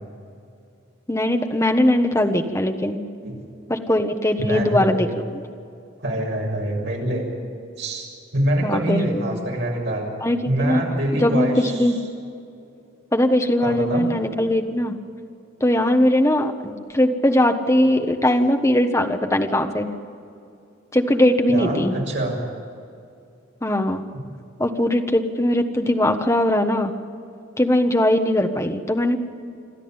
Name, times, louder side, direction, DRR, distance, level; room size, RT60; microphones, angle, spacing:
voice 1, 1.1-3.0 3.7-5.1 5.3-5.4 8.6-9.3 10.2-10.8 11.1-12.0 13.1-15.0 15.6-19.9 20.9-21.9 23.6-24.0 24.6-26.9 27.6-29.2, left 1 dB, 15° left, 4 dB, 1.3 m, -20 dB
voice 2, 4.4-5.0 6.0-7.3 7.8-10.1 10.4-11.9 13.6-14.1 21.5-22.3, right 1 dB, 60° right, -1 dB, 6.8 m, -25 dB
27.5 x 12.5 x 8.9 m, 2.5 s
head